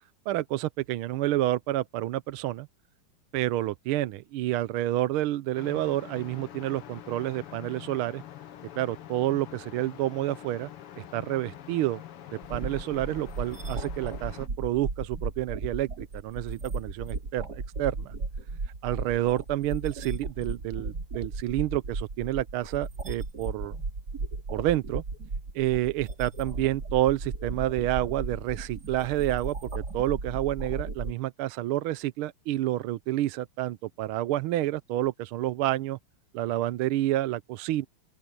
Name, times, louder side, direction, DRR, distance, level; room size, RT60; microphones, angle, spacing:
voice 1, 0.3-2.7 3.3-8.2 8.8-10.7 11.0-12.0 12.5-18.1 18.8-23.8 24.5-25.0 25.5-36.0 36.3-37.9, right 14 dB, 80° right, 1.5 m, -29 dB
sound 1, 5.6-14.5, left 11 dB, 85° left, 2.2 m, -45 dB
sound 2, 12.4-31.1, right 3 dB, 45° right, 3.4 m, -35 dB
open air
omnidirectional pair, 2.4 m